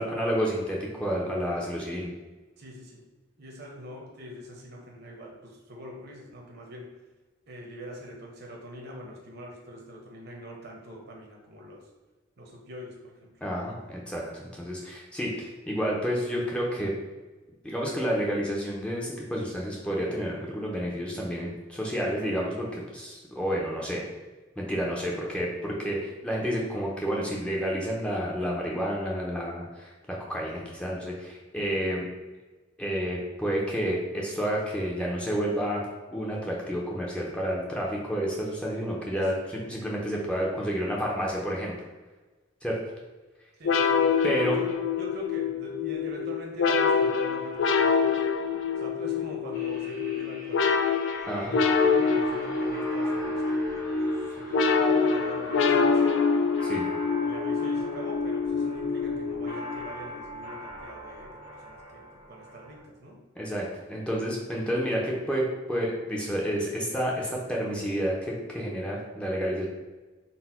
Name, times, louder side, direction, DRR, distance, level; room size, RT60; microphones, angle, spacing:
voice 1, 0.0-2.1 13.4-16.9 17.6-24.0 24.6-32.0 32.8-35.8 36.1-39.3 39.7-41.7 42.6-42.8 44.2-44.6 51.2-51.6 56.6-56.8 63.4-69.7, equal, 5° left, -4 dB, 0.5 m, -30 dB
voice 2, 2.6-3.0 3.4-6.9 7.5-11.9 12.4-13.3 22.0-22.2 39.1-39.8 43.6-44.1 44.4-48.2 48.8-50.6 51.9-56.3 57.2-63.2, equal, 55° right, 0 dB, 0.8 m, -43 dB
sound 1, 43.6-59.9, left 5 dB, 65° left, 0.3 m, -26 dB
sound 2, 49.5-62.8, equal, 45° left, 1.0 m, -41 dB
4.0 x 2.1 x 4.2 m, 1.2 s
head